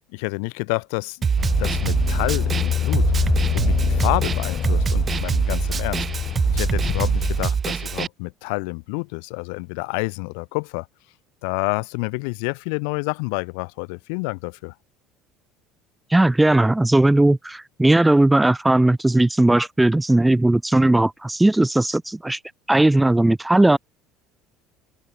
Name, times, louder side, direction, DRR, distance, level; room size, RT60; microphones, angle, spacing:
voice 1, 0.1-1.3 1.6-6.0 6.5-10.9 11.4-14.7, left 39 dB, 85° left, 6.9 m, -29 dB
Snare drum, 1.2-8.1, right 6 dB, 25° right, 2.4 m, -23 dB
sound 1, 1.4-7.5, left 10 dB, 35° left, 2.0 m, -25 dB
voice 2, 16.1-22.4 22.7-23.8, right 2 dB, 5° right, 0.8 m, -17 dB
open air
cardioid pair, 155°, 0 cm